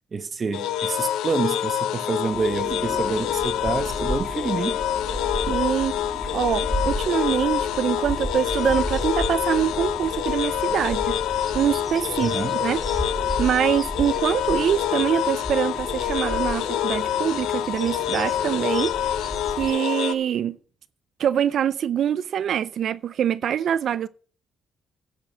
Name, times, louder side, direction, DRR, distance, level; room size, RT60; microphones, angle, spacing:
voice 1, 0.1-4.8 12.2-12.6, right 4 dB, 40° right, 1.0 m, -28 dB
sound 1, 0.5-20.1, left 11 dB, 90° left, 0.7 m, -27 dB
sound 2, 2.3-19.7, equal, 15° left, 4.9 m, -33 dB
voice 2, 5.5-6.0 6.3-11.2 11.5-12.3 12.6-12.8 13.4-19.2 19.6-20.6 21.2-24.1, right 9 dB, 65° right, 0.4 m, -24 dB
10.5 x 6.7 x 7.5 m
cardioid pair, 90°, 0 cm